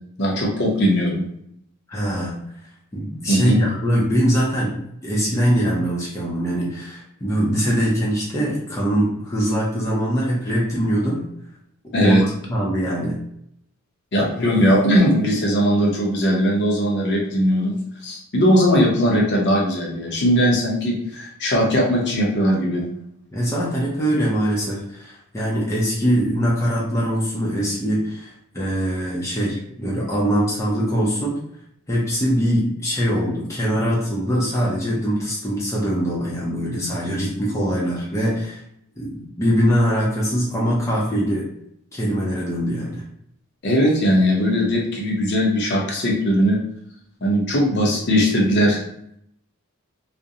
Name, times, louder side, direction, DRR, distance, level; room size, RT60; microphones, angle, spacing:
voice 1, 0.2-1.2 3.3-3.6 11.9-12.2 14.1-17.7 18.0-22.8 43.6-46.6 47.2-48.8, equal, 50° left, -1 dB, 0.7 m, -19 dB
voice 2, 1.9-2.4 2.9-4.8 5.0-11.3 12.0-13.2 23.3-31.4 31.9-38.6 39.0-41.5 41.9-43.0, equal, 15° left, -5 dB, 0.5 m, -22 dB
2.5 x 2.1 x 2.7 m, 0.73 s
head